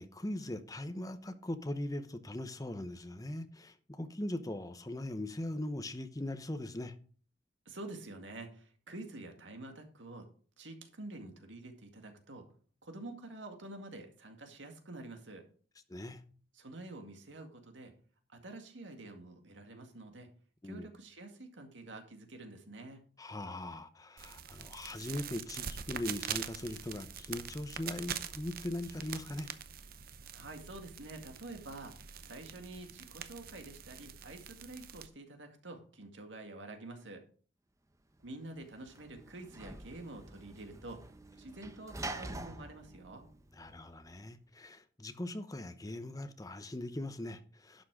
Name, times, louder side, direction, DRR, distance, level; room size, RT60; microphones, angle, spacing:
voice 1, 0.0-7.0 15.9-16.2 20.6-20.9 23.2-29.5 43.5-47.8, left 1 dB, 20° left, 0.9 m, -40 dB
voice 2, 7.7-10.3 10.6-12.5 12.8-15.4 16.6-17.9 18.3-20.3 20.6-23.1 30.3-32.0 32.2-37.2 38.2-41.0 41.4-43.2, right 2 dB, 80° right, 2.1 m, -48 dB
sound 1, 24.2-35.1, right 8 dB, 50° right, 0.7 m, -44 dB
Sliding door / Slam, 38.3-44.1, right 2 dB, 15° right, 0.8 m, -47 dB
11.5 x 6.2 x 4.9 m
head